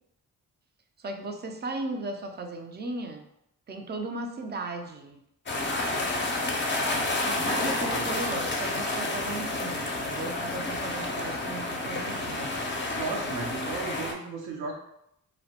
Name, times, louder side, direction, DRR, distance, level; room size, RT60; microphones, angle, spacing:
voice 1, 1.0-3.3 3.7-5.2 7.3-12.6, right 2 dB, 30° right, 5 dB, 0.4 m, -36 dB
sound 1, 5.5-14.1, left 2 dB, 30° left, 0.5 m, -30 dB
voice 2, 12.9-14.7, right 4 dB, 80° right, 1 dB, 0.6 m, -34 dB
2.2 x 2.1 x 2.7 m, 0.78 s
cardioid pair, 60°, 37 cm